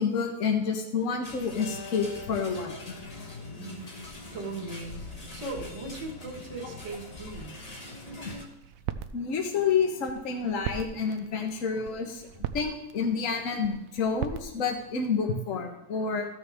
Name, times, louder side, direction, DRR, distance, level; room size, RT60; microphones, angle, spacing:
voice 1, 0.0-2.9 8.2-8.4 9.1-16.3, left 5 dB, 60° left, 3 dB, 1.4 m, -29 dB
sound 1, 1.2-8.4, left 2 dB, 25° left, 1.3 m, -43 dB
Acoustic guitar, 1.6-4.9, left 3 dB, 90° left, 2.0 m, -48 dB
voice 2, 3.5-4.0 4.3-5.0 5.3-7.5, right 3 dB, 50° right, -2 dB, 2.0 m, -38 dB
sound 2, 7.3-15.2, right 10 dB, 70° right, 0.9 m, -41 dB
14.0 x 6.3 x 3.5 m, 0.90 s
omnidirectional pair, 1.7 m